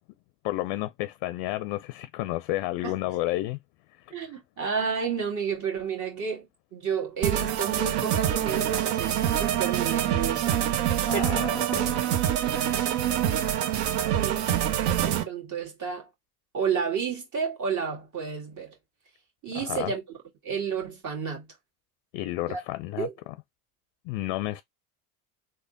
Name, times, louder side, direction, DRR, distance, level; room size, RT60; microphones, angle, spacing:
voice 1, 0.4-3.6 4.2-4.3 11.1-12.1 19.5-19.9 22.1-23.1 24.1-24.6, left 16 dB, 55° left, 0.5 m, -31 dB
voice 2, 4.1-11.2 14.1-14.5 14.9-16.1 16.5-18.7 19.4-20.0 20.4-21.5 22.5-22.6 23.0-23.1, right 6 dB, 40° right, 1.7 m, -31 dB
sound 1, 7.2-15.2, right 11 dB, 60° right, 0.8 m, -25 dB
3.4 x 2.1 x 3.7 m
hypercardioid pair, 75°, 47 cm